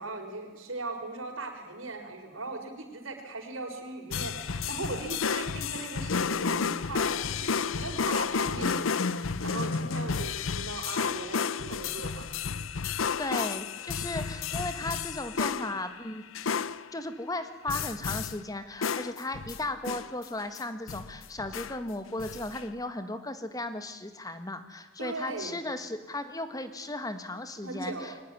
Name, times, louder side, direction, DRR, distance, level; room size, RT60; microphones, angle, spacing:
voice 1, 0.0-12.3 15.5-15.8 25.0-25.6 27.6-28.2, right 2 dB, 85° right, 4 dB, 4.9 m, -39 dB
sound 1, 4.1-16.0 16.3-16.9 17.7-18.5 18.8-20.6 20.9-21.8 22.1-22.6, left 5 dB, 90° left, 0.7 m, -31 dB
voice 2, 12.8-16.2 16.9-28.1, left 2 dB, 20° left, 9 dB, 1.7 m, -36 dB
22.5 x 19.5 x 10.0 m, 1.3 s
head